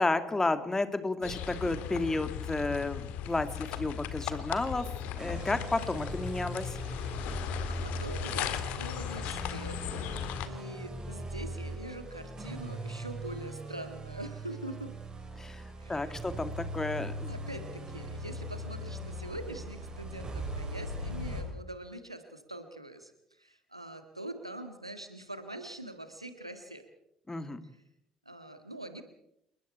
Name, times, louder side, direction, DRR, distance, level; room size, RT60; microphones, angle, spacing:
voice 1, 0.0-4.9 5.1-6.8 15.4-17.3 27.3-27.6, left 2 dB, 15° left, 10 dB, 2.4 m, -32 dB
sound 1, 1.2-10.5, left 10 dB, 60° left, 2.0 m, -37 dB
sound 2, 5.2-21.4, right 1 dB, 30° right, 6.7 m, -40 dB
voice 2, 7.3-10.2 10.4-14.9 15.8-16.3 17.3-26.8 27.6-27.8 28.3-29.0, right 1 dB, 90° right, 8 dB, 1.8 m, -44 dB
28.0 x 21.5 x 4.5 m, 0.78 s
figure-of-eight pair, 50°, 3 cm